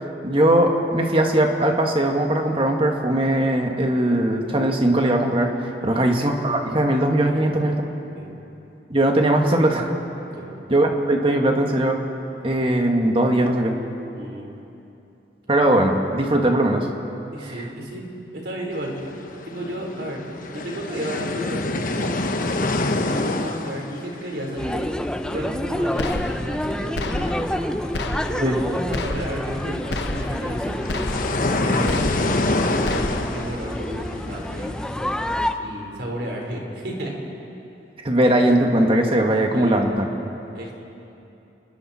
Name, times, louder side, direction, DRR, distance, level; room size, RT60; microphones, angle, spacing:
voice 1, 0.2-7.8 8.9-9.9 10.7-12.0 12.4-13.8 15.5-16.9 28.4-28.6 38.0-40.1, right 1 dB, 30° right, 2 dB, 1.8 m, -20 dB
voice 2, 14.1-14.5 17.3-18.9 19.4-20.2 20.5-22.2 23.0-24.9 25.2-27.6 28.3-30.9 31.5-34.7 35.6-37.1 39.5-39.9 40.5-40.7, equal, 70° right, -1 dB, 4.3 m, -33 dB
sound 1, 18.7-35.4, left 2 dB, 50° left, 1.2 m, -28 dB
sound 2, 24.6-35.5, equal, 5° left, 0.6 m, -28 dB
sound 3, 26.0-26.7 27.0-27.7 27.9-28.6 28.9-29.6 29.9-30.6 30.9-31.6 31.9-32.6 32.9-33.5, left 2 dB, 75° left, 1.1 m, -30 dB
29.5 x 21.0 x 4.4 m, 2.9 s
head